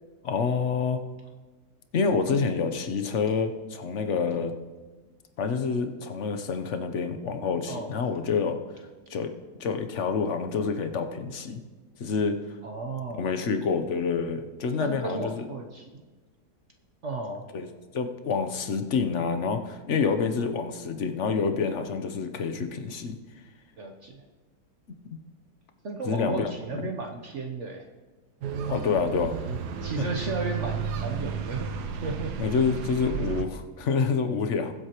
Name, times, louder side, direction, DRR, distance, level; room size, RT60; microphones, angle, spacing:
voice 1, 0.2-1.0 1.9-4.5 5.4-8.6 9.1-9.3 9.6-11.6 12.0-12.6 13.2-15.5 17.5-17.7 17.9-23.2 24.9-25.0 26.0-26.9 28.7-29.4 30.0-30.1 32.4-34.7, left 5 dB, 55° left, 7 dB, 1.0 m, -27 dB
voice 2, 12.6-13.3 14.8-16.0 17.0-17.5 23.8-24.2 25.8-27.9 28.7-28.8 29.5-31.7 32.0-32.3, right 3 dB, 55° right, 2 dB, 1.0 m, -34 dB
sound 1, 28.4-33.5, right 7 dB, 90° right, 1.4 m, -33 dB
20.5 x 8.0 x 3.0 m, 1.3 s
omnidirectional pair, 1.7 m